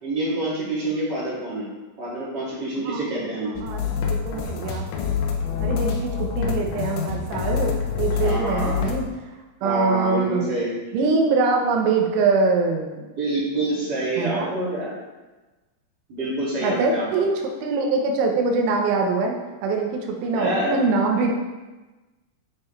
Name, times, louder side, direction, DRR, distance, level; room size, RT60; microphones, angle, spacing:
voice 1, 0.0-1.7 2.0-3.5 8.2-8.8 9.6-10.7 13.2-15.0 16.1-17.2 20.3-20.8, right 1 dB, 35° right, -8 dB, 1.7 m, -27 dB
voice 2, 3.5-4.9 5.6-9.1 9.6-10.5 10.9-13.0 14.2-14.5 16.6-17.3 17.6-21.3, right 4 dB, 85° right, 2 dB, 3.4 m, -23 dB
sound 1, 3.6-9.0, left 7 dB, 90° left, 3.4 m, -26 dB
8.6 x 6.7 x 3.2 m, 1.2 s
omnidirectional pair, 5.4 m